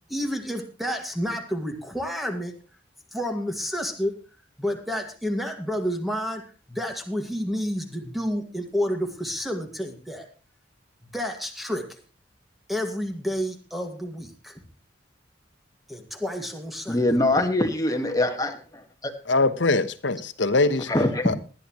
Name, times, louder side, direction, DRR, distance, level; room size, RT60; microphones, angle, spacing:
voice 1, 0.1-2.6 3.1-4.2 4.6-6.4 6.7-10.3 11.1-12.0 12.7-14.6 15.9-17.0, equal, ahead, 2.0 m, -30 dB
voice 2, 16.9-19.1 20.9-21.3, left 1 dB, 20° left, 1.7 m, -23 dB
voice 3, 19.3-20.9 21.2-21.3, left 3 dB, 80° left, 1.1 m, -22 dB
19.0 x 11.0 x 3.1 m
head